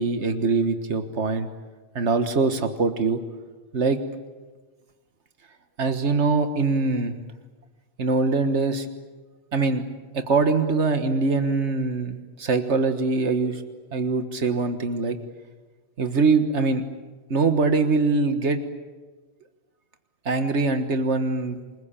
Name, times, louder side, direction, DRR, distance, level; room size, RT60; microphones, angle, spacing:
voice 1, 0.0-1.5 2.0-3.2 3.7-4.0 5.8-7.2 8.0-8.9 9.5-9.8 10.1-13.6 13.9-15.2 16.0-16.8 17.3-18.6 20.3-21.6, right 4 dB, 85° right, 8 dB, 1.8 m, -23 dB
28.0 x 21.0 x 8.9 m, 1.3 s
omnidirectional pair, 1.1 m